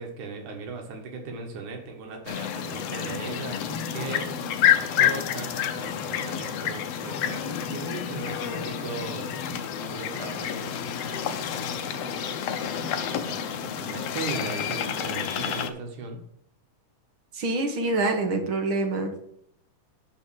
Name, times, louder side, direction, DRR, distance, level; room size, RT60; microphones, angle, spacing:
voice 1, 0.0-4.3 4.8-9.3 9.8-16.2, right 4 dB, 75° right, 2 dB, 2.9 m, -38 dB
sound 1, 2.3-15.7, left 9 dB, 70° left, 1.5 m, -29 dB
voice 2, 17.3-19.3, right 2 dB, 50° right, 4 dB, 1.7 m, -26 dB
11.5 x 4.4 x 6.3 m, 0.71 s
omnidirectional pair, 3.5 m